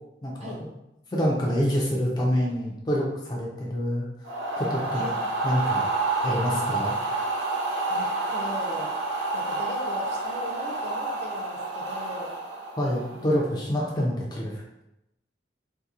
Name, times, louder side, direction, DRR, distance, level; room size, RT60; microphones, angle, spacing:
voice 1, 0.2-0.7 1.1-4.1 4.6-5.1 5.4-5.8 6.2-6.9 12.8-14.6, equal, 25° left, -3 dB, 0.4 m, -26 dB
sound 1, 4.2-13.3, right 2 dB, 85° right, 0.6 m, -29 dB
voice 2, 7.9-12.3 13.1-13.3, equal, 40° right, -2 dB, 0.5 m, -39 dB
2.7 x 2.0 x 2.4 m, 0.86 s
head